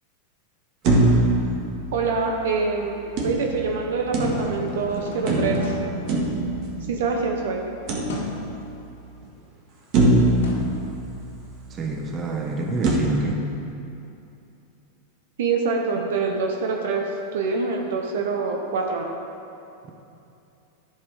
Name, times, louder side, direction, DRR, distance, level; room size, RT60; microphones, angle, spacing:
sound 1, 0.8-2.5 3.2-4.8 5.3-7.2 7.9-8.7 9.2-9.3 9.9-11.6 12.8-12.9, right 2 dB, 50° right, 1.7 m, -23 dB
voice 1, 1.9-5.8 6.9-7.6 15.4-17.0 17.3-19.1, right 4 dB, 75° right, 2 dB, 0.9 m, -25 dB
sound 2, 4.0-6.9 8.1-8.5 10.4-11.5, left 2 dB, 80° left, 1.4 m, -35 dB
voice 2, 11.7-13.4 19.8-19.9, right 2 dB, 30° right, 1 dB, 1.3 m, -27 dB
10.5 x 5.7 x 4.9 m, 2.7 s
hypercardioid pair, 110°, 0 cm